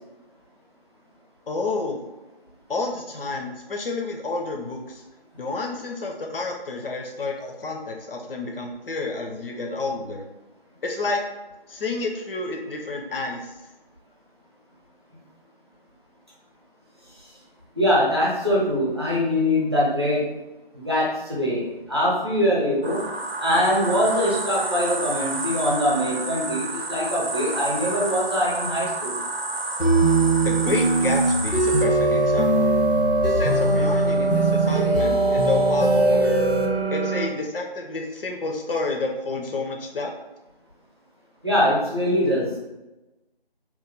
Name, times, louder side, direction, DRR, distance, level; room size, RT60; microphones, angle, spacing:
voice 1, 1.5-2.0 2.7-5.0 5.4-10.3 10.8-11.2 11.7-13.5 30.4-32.7 33.2-36.3 36.9-40.2, left 3 dB, 65° left, 2 dB, 0.6 m, -30 dB
voice 2, 17.7-20.3 20.7-23.1 23.4-29.2 41.4-42.6, left 1 dB, 25° right, -6 dB, 0.7 m, -23 dB
sound 1, 22.8-37.3, right 2 dB, 85° right, 0.6 m, -26 dB
sound 2, 29.8-36.7, right 2 dB, 85° left, 1.0 m, -22 dB
3.0 x 2.2 x 3.6 m, 1.0 s
figure-of-eight pair, 165°, 30 cm